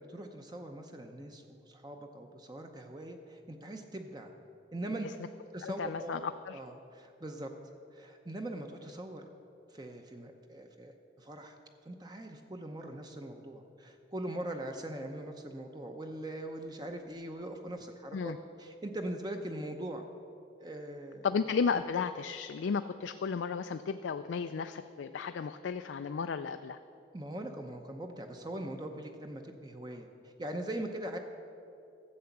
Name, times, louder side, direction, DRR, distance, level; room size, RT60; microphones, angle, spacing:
voice 1, 0.1-4.3 4.7-5.1 5.5-6.2 6.5-7.5 7.9-9.3 9.7-10.9 11.2-11.6 11.8-20.0 20.6-21.3 27.1-31.2, right 1 dB, 20° right, 4 dB, 0.7 m, -41 dB
voice 2, 5.6-6.6 18.1-18.4 21.2-26.8, left 5 dB, 85° left, 9 dB, 0.4 m, -34 dB
13.0 x 7.7 x 7.1 m, 2.6 s
head